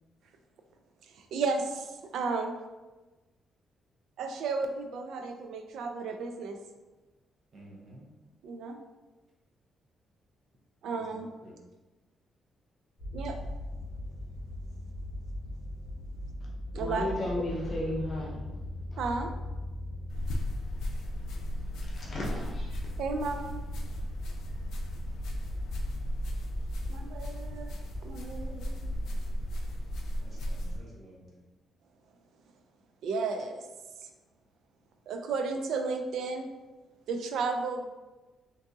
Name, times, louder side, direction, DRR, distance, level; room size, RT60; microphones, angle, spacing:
voice 1, 1.1-2.6 4.2-6.6 8.4-8.8 10.8-11.3 13.1-13.4 16.7-17.1 19.0-19.3 23.0-23.6 26.9-28.8 33.0-33.7 35.1-36.5 37.1-37.9, right 4 dB, 75° right, 6 dB, 0.4 m, -33 dB
voice 2, 7.5-8.1 10.9-11.6 29.0-29.2 30.2-31.4, right 1 dB, 45° right, -3 dB, 0.7 m, -52 dB
sound 1, 13.0-30.1, left 1 dB, 15° left, 1.2 m, -40 dB
voice 3, 16.8-18.6 18.9-19.0 21.8-22.8, left 1 dB, 35° left, -4 dB, 0.6 m, -34 dB
sound 2, 20.1-30.8, equal, 85° left, 0.4 m, -36 dB
3.5 x 2.6 x 2.6 m, 1.2 s
cardioid pair, 150°, 0 cm